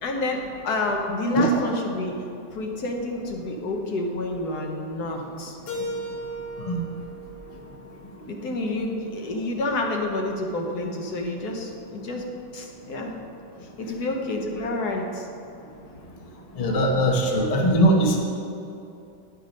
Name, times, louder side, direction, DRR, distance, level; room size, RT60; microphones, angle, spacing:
voice 1, 0.0-2.2 2.5-5.6 8.3-13.2 13.8-15.3, left 2 dB, 65° left, 2 dB, 1.3 m, -29 dB
Keyboard (musical), 5.7-8.6, equal, 80° left, 2.1 m, -36 dB
voice 2, 16.6-18.2, right 1 dB, 35° left, 0 dB, 0.6 m, -20 dB
10.0 x 5.4 x 5.1 m, 2.7 s
omnidirectional pair, 2.0 m